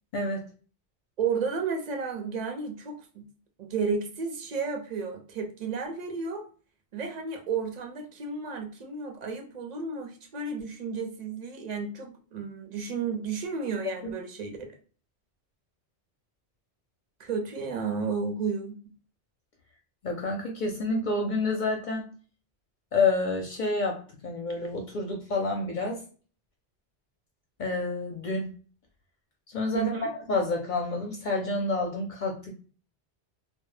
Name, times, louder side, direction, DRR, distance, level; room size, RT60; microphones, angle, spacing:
voice 1, 0.1-0.5 14.0-14.1 20.0-22.0 22.9-26.0 27.6-28.5 29.5-29.9 30.3-32.5, left 3 dB, 55° left, 1 dB, 0.5 m, -28 dB
voice 2, 1.2-3.3 3.6-6.4 6.9-14.7 17.2-18.8 29.7-30.1, right 5 dB, 50° right, 4 dB, 0.5 m, -32 dB
2.1 x 2.1 x 3.1 m, 0.41 s
omnidirectional pair, 1.2 m